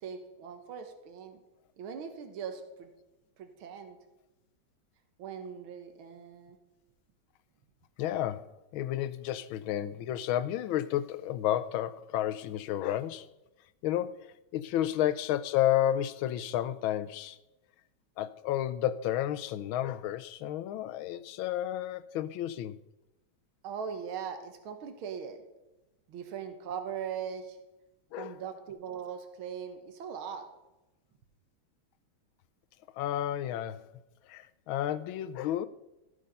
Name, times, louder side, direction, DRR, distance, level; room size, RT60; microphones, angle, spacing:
voice 1, 0.0-1.4 1.8-2.9 3.4-4.0 5.2-6.6 23.6-25.4 26.1-27.6 28.2-30.5, right 7 dB, 80° right, 2.0 m, -40 dB
voice 2, 8.0-13.3 13.8-17.4 18.2-22.8 28.1-28.4 32.9-33.9 34.2-35.7, left 12 dB, 80° left, 1.4 m, -31 dB
16.0 x 6.6 x 5.4 m
omnidirectional pair, 2.3 m